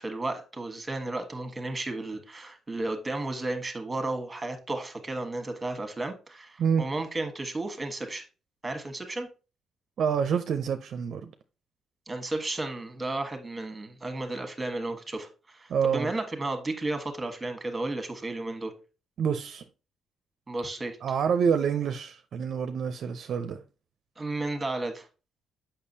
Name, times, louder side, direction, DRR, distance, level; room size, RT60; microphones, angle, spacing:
voice 1, 0.0-8.2 8.6-9.3 12.1-18.7 20.5-21.0 24.2-25.1, right 2 dB, 20° right, 1.3 m, -33 dB
voice 2, 10.0-11.3 15.7-16.1 19.2-19.6 21.0-23.6, right 7 dB, 65° right, 0.5 m, -27 dB
6.6 x 5.7 x 2.7 m
cardioid pair, 90°, 0 cm